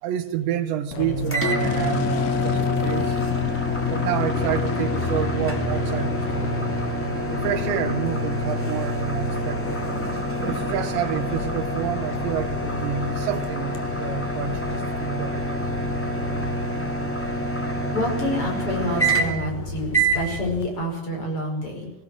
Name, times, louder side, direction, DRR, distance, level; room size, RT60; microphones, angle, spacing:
voice 1, 0.0-3.2 3.9-6.5 7.3-9.8 10.4-15.4, right 10 dB, 80° right, 9 dB, 3.5 m, -29 dB
Fixed-wing aircraft airplane, 0.9-20.6, left 3 dB, 55° left, 3.3 m, -31 dB
sound 1, 1.3-19.5 19.9-20.2, right 1 dB, 5° left, 1.6 m, -28 dB
sound 2, 1.6-16.4, left 5 dB, 75° left, 3.8 m, -35 dB
voice 2, 17.9-21.9, left 1 dB, 30° left, 1 dB, 5.8 m, -28 dB
20.0 x 18.0 x 7.5 m, 0.91 s
omnidirectional pair, 5.1 m